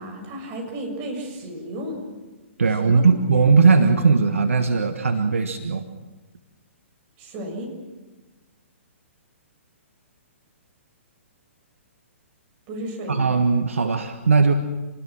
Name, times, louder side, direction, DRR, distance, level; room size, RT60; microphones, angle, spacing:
voice 1, 0.0-2.0 2.8-3.0 3.3-3.4 7.2-7.7 12.7-13.3, right 1 dB, 35° right, 2 dB, 7.1 m, -33 dB
voice 2, 2.6-5.8 13.1-14.5, right 4 dB, 80° right, 7 dB, 1.4 m, -18 dB
28.5 x 20.0 x 6.2 m, 1.2 s
figure-of-eight pair, 125°, 7 cm